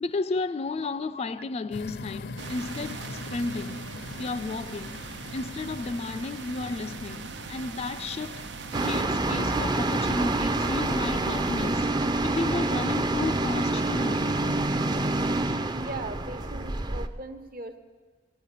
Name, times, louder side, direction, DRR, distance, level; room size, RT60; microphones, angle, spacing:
voice 1, 0.0-5.0 5.3-8.5 8.8-14.7, left 3 dB, 35° left, 0.4 m, -33 dB
voice 2, 0.8-1.2 10.1-10.2 12.9-13.0 13.7-13.8 15.7-17.8, right 2 dB, 55° right, 1.1 m, -39 dB
sound 1, 1.7-11.7, left 3 dB, 75° left, 0.7 m, -44 dB
sound 2, 2.4-9.0, right 5 dB, 85° right, 0.7 m, -41 dB
sound 3, 8.7-17.1, right 2 dB, 25° right, 0.5 m, -27 dB
16.5 x 9.5 x 8.3 m
head